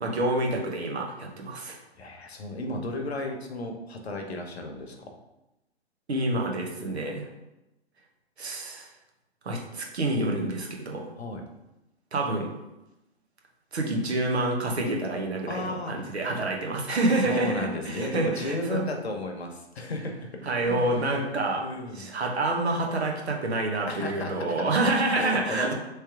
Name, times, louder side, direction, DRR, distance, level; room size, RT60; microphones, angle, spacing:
voice 1, 0.0-1.8 6.1-7.3 8.4-8.9 9.4-11.1 12.1-12.5 13.7-18.9 20.4-21.6 21.9-25.7, right 2 dB, 70° right, 1 dB, 1.1 m, -28 dB
voice 2, 1.9-5.1 11.2-11.4 15.5-16.2 17.2-21.2 21.6-22.1 23.8-24.7 25.1-25.7, left 2 dB, 70° left, 3 dB, 1.0 m, -34 dB
3.3 x 3.2 x 4.5 m, 0.94 s
figure-of-eight pair, 125°, 33 cm